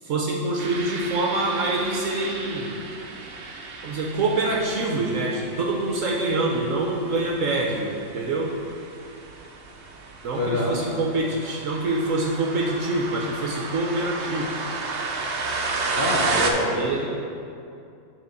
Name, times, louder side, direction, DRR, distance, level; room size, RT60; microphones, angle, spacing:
voice 1, 0.0-2.8 3.8-8.5 10.2-14.5 16.7-17.1, right 2 dB, 60° right, -1 dB, 0.9 m, -25 dB
sound 1, 0.6-16.5, right 3 dB, 90° right, 0.5 m, -33 dB
voice 2, 10.3-10.8 15.9-17.1, left 1 dB, 45° left, -5 dB, 0.7 m, -26 dB
7.0 x 3.8 x 6.3 m, 2.5 s
omnidirectional pair, 1.8 m